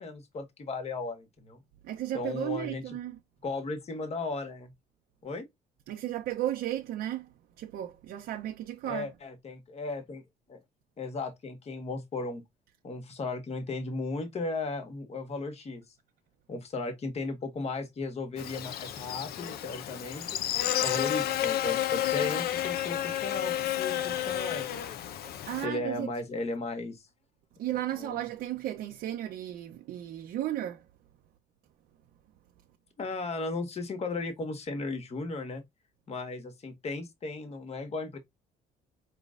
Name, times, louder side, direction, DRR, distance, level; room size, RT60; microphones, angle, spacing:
voice 1, 0.0-1.6 2.1-2.8 3.4-4.7 5.2-5.4 8.8-10.2 10.5-10.6 11.0-12.4 12.8-15.8 16.5-20.3 20.8-24.9 25.6-27.0 27.9-28.2 33.0-35.6 36.1-38.2, left 3 dB, 40° left, 1.5 m, -36 dB
voice 2, 1.8-3.2 5.9-7.3 7.6-9.1 25.2-26.1 27.6-30.8, right 13 dB, 70° right, 0.7 m, -34 dB
Buzz, 18.4-25.7, left 12 dB, 65° left, 0.7 m, -31 dB
5.0 x 3.4 x 2.5 m
cardioid pair, 110°, 17 cm